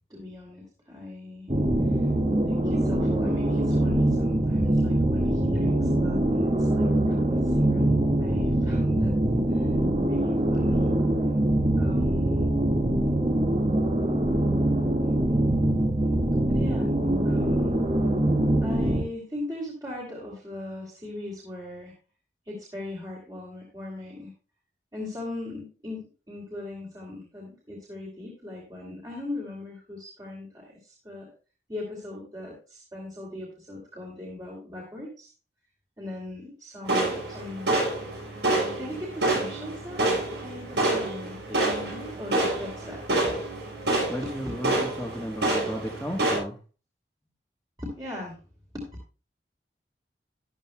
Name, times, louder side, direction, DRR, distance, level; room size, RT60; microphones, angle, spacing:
voice 1, 0.1-1.5 1.9-2.1 2.4-9.1 9.5-9.8 10.0-10.9 11.8-12.5 16.5-16.9 17.2-17.7 18.6-21.9 22.5-24.3 24.9-31.3 31.7-35.3 36.0-37.7 38.2-38.5 38.8-40.1 40.4-43.0 44.2-44.3 44.7-45.2 47.8-48.4 48.7-49.0, left 2 dB, 20° right, -3 dB, 2.7 m, -39 dB
sound 1, 1.5-19.0, right 1 dB, 35° right, 1.6 m, -23 dB
sound 2, 36.9-46.4, right 2 dB, 85° right, 6.8 m, -27 dB
voice 2, 44.1-46.6, equal, 5° left, -3 dB, 1.1 m, -34 dB
13.0 x 11.5 x 2.2 m, 0.35 s
head